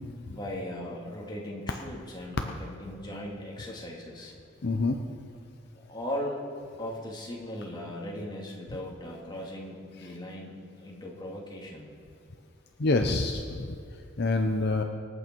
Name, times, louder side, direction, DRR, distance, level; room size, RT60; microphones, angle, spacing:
voice 1, 0.3-4.3 5.9-6.4 6.8-11.9 13.0-13.1, left 1 dB, 20° left, -2 dB, 2.5 m, -38 dB
voice 2, 4.6-5.0 12.8-13.7 14.2-14.8, left 2 dB, 55° left, 4 dB, 0.7 m, -26 dB
25.0 x 8.6 x 4.7 m, 2.3 s
head